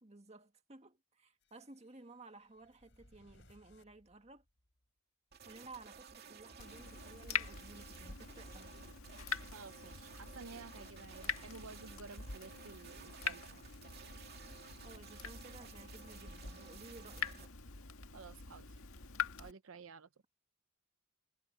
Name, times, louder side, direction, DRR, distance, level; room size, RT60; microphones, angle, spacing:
voice 1, 0.0-4.4 5.5-8.7 14.8-17.5, right 3 dB, 30° right, 1.8 m, -56 dB
sound 1, 1.4-4.9, left 1 dB, 55° left, 5.9 m, -67 dB
sound 2, 5.3-17.5, right 6 dB, 45° right, 2.7 m, -55 dB
Water tap faucet / Drip, 6.6-19.5, left 6 dB, 85° left, 1.9 m, -44 dB
voice 2, 9.5-13.8 18.1-18.7 19.4-20.1, right 4 dB, 75° right, 0.7 m, -53 dB
head